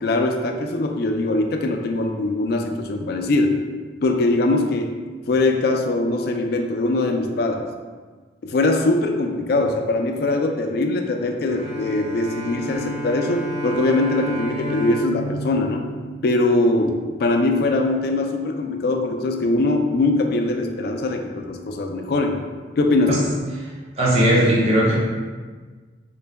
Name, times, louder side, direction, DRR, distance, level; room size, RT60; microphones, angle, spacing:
voice 1, 0.0-3.6 4.0-4.9 5.3-7.6 8.4-15.8 16.2-22.4 22.8-23.3, left 2 dB, 55° left, 4 dB, 0.3 m, -21 dB
Bowed string instrument, 11.4-16.8, equal, 85° right, 0.9 m, -31 dB
voice 2, 24.0-25.0, right 1 dB, 35° right, -5 dB, 0.6 m, -18 dB
3.7 x 2.1 x 3.3 m, 1.4 s
head